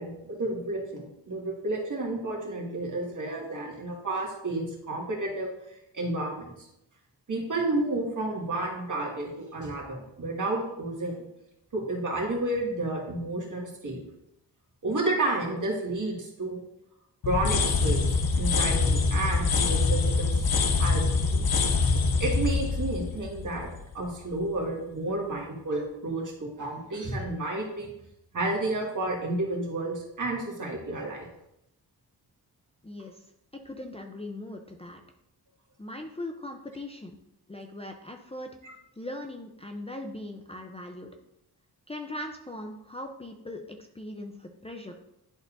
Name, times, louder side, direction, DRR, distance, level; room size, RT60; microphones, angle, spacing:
voice 1, 0.0-6.5 7.3-11.3 11.7-14.0 14.8-16.6 17.2-20.5 20.7-21.5 22.2-27.9 28.3-31.3 38.6-38.7, right 2 dB, 50° right, -2 dB, 2.0 m, -31 dB
sound 1, 17.2-24.1, left 4 dB, 60° left, 0.8 m, -25 dB
voice 2, 32.8-33.2 33.5-35.0 35.8-37.2 37.5-41.1 41.9-44.9, left 1 dB, 15° left, 2 dB, 0.5 m, -40 dB
11.0 x 4.3 x 2.6 m, 0.84 s
wide cardioid pair, 85°, 40 cm